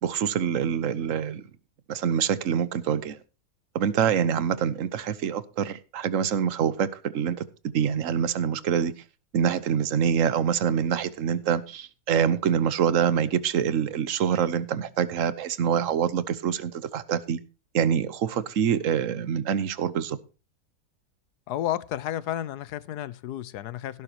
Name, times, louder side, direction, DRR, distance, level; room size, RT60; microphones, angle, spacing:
voice 1, 0.0-1.4 1.9-3.2 3.7-7.5 7.7-8.9 9.3-17.4 17.7-20.2, right 8 dB, 60° right, 1.3 m, -25 dB
voice 2, 21.5-24.0, left 12 dB, 90° left, 1.3 m, -32 dB
17.0 x 11.0 x 2.9 m
omnidirectional pair, 1.6 m